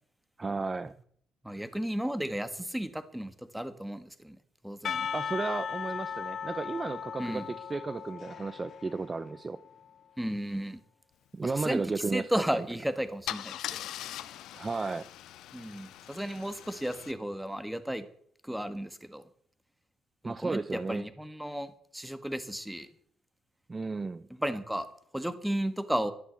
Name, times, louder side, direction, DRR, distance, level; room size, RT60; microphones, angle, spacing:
voice 1, 0.4-0.9 5.1-9.6 11.3-12.7 14.5-15.1 20.2-21.1 23.7-24.3, right 3 dB, 25° right, 15 dB, 0.7 m, -34 dB
voice 2, 1.4-4.4 4.6-5.1 7.2-7.5 10.2-10.8 11.4-11.8 12.1-13.9 15.5-18.0 18.5-19.2 20.2-22.9 24.4-24.9 25.1-26.1, equal, 5° right, 12 dB, 1.7 m, -34 dB
Percussion / Church bell, 4.8-9.9, left 7 dB, 55° left, 1.1 m, -37 dB
Car / Engine starting / Idling, 12.5-12.7 13.3-17.1, left 13 dB, 85° left, 0.8 m, -41 dB
12.0 x 11.0 x 8.0 m, 0.63 s
cardioid pair, 90°, 0 cm